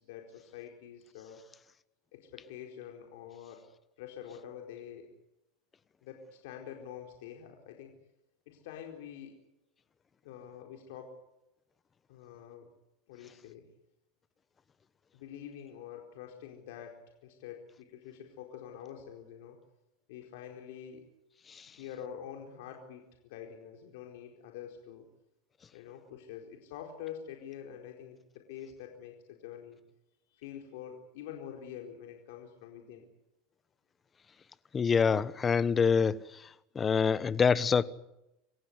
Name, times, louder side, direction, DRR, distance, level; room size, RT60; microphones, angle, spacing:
voice 1, 0.0-1.5 2.1-3.6 4.0-5.1 6.0-7.9 8.5-9.3 10.2-11.2 12.1-12.7 13.1-13.7 15.1-19.6 20.1-21.0 21.7-25.1 25.7-29.8 30.3-33.1, left 9 dB, 75° left, 4.4 m, -46 dB
voice 2, 34.7-36.5 36.7-37.8, left 6 dB, 25° left, 1.1 m, -26 dB
28.0 x 15.5 x 9.5 m
supercardioid pair, 125°, 0 cm